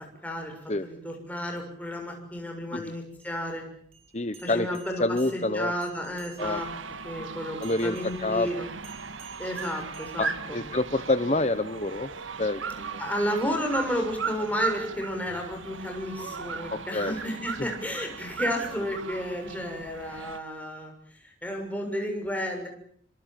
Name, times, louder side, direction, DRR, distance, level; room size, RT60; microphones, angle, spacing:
voice 1, 0.2-3.6 4.4-5.0 5.3-6.7 7.0-8.7 9.4-10.6 13.0-22.7, equal, 10° left, 3 dB, 6.8 m, -32 dB
sound 1, 3.1-6.8 7.6-10.8, right 6 dB, 30° right, 8.0 m, -54 dB
voice 2, 4.1-4.7 5.0-5.7 6.4-6.6 7.1-7.3 7.6-8.6 10.2-12.1 12.4-13.0 16.7-17.1 17.6-17.7, left 2 dB, 35° left, 11 dB, 1.1 m, -28 dB
sound 2, 6.4-20.4, right 5 dB, 90° right, 1.7 m, -37 dB
27.5 x 25.5 x 7.6 m, 0.63 s
head